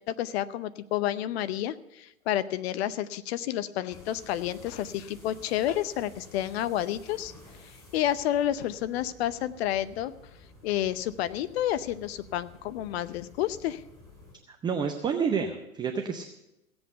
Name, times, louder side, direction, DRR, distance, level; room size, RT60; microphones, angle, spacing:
voice 1, 0.1-7.3 7.6-10.1 10.6-13.8, left 12 dB, 45° left, 14 dB, 0.8 m, -30 dB
sound 1, 3.9-14.3, left 2 dB, 5° left, 6.5 m, -52 dB
voice 2, 14.5-16.3, right 6 dB, 10° right, 5 dB, 0.5 m, -29 dB
16.0 x 8.0 x 6.7 m, 0.88 s
hypercardioid pair, 115°, 43 cm